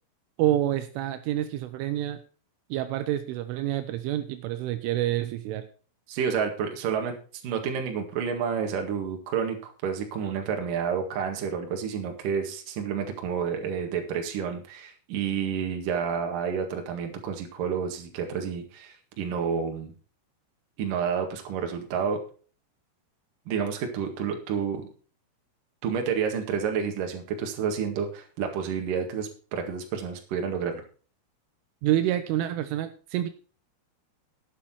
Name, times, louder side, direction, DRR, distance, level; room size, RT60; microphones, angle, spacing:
voice 1, 0.4-2.2 2.7-5.7 31.8-33.3, right 13 dB, 80° right, 9 dB, 3.2 m, -27 dB
voice 2, 6.1-7.1 7.4-19.9 20.8-22.2 23.5-24.9 25.8-30.8, right 7 dB, 55° right, 3 dB, 2.8 m, -30 dB
11.5 x 8.7 x 4.4 m, 0.39 s
omnidirectional pair, 5.8 m